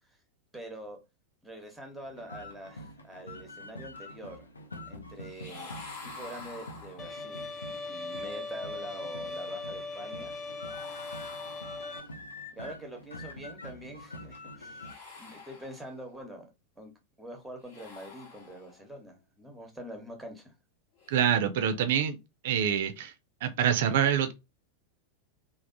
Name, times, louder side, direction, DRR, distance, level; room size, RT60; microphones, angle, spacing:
voice 1, 0.5-1.0 1.4-4.5 4.9-5.7 6.0-7.5 7.9-10.3 12.5-16.5 16.8-20.5, right 1 dB, ahead, 0.9 m, -45 dB
sound 1, 2.0-15.0, left 1 dB, 75° left, 0.5 m, -46 dB
sound 2, 5.2-7.4 10.6-12.2 14.7-16.2 17.5-18.9 21.0-21.2, left 4 dB, 50° left, 1.0 m, -48 dB
Bowed string instrument, 7.0-12.0, left 3 dB, 25° left, 0.5 m, -39 dB
voice 2, 21.1-22.2 22.4-23.1 23.4-24.3, right 9 dB, 55° right, 0.4 m, -26 dB
3.3 x 2.0 x 2.6 m
figure-of-eight pair, 90°, 0 cm